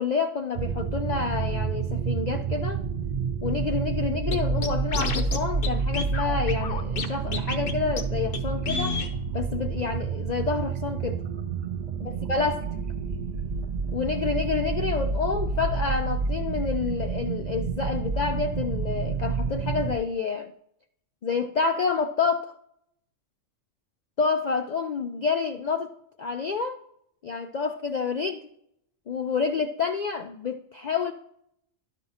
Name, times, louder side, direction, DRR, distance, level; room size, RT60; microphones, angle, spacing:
voice 1, 0.0-2.8 3.4-9.0 9.3-11.2 12.0-12.7 13.9-20.5 21.2-22.5 24.2-26.8 27.2-28.5 29.1-31.1, left 5 dB, 70° left, 0.4 m, -28 dB
sound 1, 0.6-20.0, right 5 dB, 65° right, 0.4 m, -29 dB
Scratching (performance technique), 4.3-4.4 4.6-5.4 5.6-5.7 5.9-7.1 7.3-7.7 8.0-8.1 8.3-8.4 8.7-9.1, left 4 dB, 50° left, 0.9 m, -29 dB
11.5 x 5.3 x 2.7 m
omnidirectional pair, 1.3 m